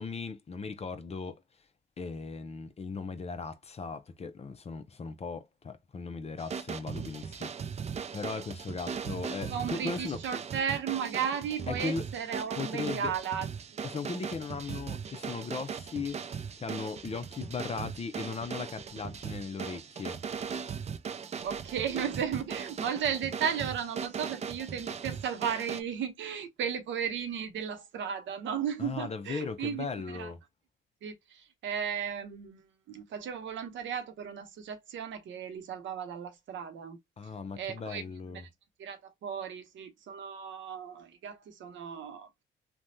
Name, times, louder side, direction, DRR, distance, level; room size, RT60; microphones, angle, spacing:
voice 1, 0.0-1.4 2.0-7.7 8.1-10.2 11.7-12.1 12.6-13.1 13.8-20.2 28.8-30.4 37.2-38.5, left 4 dB, 30° left, 0.6 m, -38 dB
sound 1, 6.4-25.8, right 6 dB, 35° right, 0.4 m, -39 dB
voice 2, 9.5-13.5 21.4-30.3 31.0-37.0 37.6-38.4 38.8-42.3, right 8 dB, 70° right, 0.8 m, -35 dB
3.3 x 2.2 x 2.7 m
cardioid pair, 90°, 20 cm